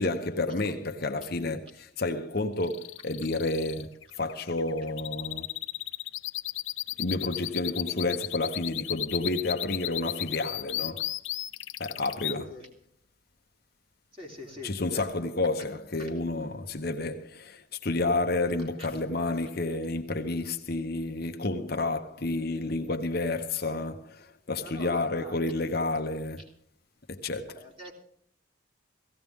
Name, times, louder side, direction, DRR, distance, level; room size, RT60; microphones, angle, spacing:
voice 1, 0.0-5.5 7.0-11.1 11.8-12.6 14.5-26.5 27.1-27.6, left 2 dB, 50° left, 1.0 m, -30 dB
sound 1, 2.6-12.4, left 15 dB, 70° left, 0.6 m, -34 dB
voice 2, 14.1-15.2 18.8-18.9 24.6-25.5 27.5-27.9, left 1 dB, 25° right, 3.5 m, -44 dB
17.5 x 16.5 x 3.6 m
head